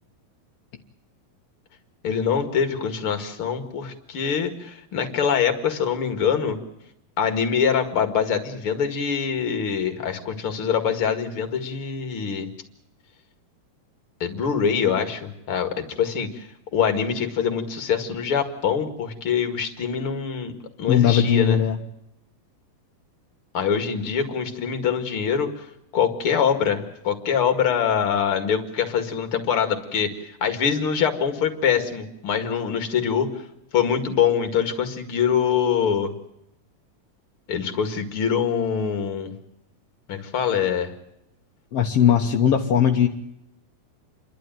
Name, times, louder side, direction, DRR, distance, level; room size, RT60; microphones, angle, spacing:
voice 1, 2.0-6.6 7.2-12.5 14.2-20.5 20.8-21.6 23.5-25.7 25.9-30.1 30.4-33.4 33.7-36.1 37.5-39.3 40.1-40.9, left 7 dB, 45° left, 7 dB, 2.3 m, -24 dB
voice 2, 20.9-21.8 41.7-43.1, left 8 dB, 60° left, 1 dB, 1.6 m, -18 dB
29.0 x 12.0 x 9.1 m, 0.84 s
omnidirectional pair, 4.3 m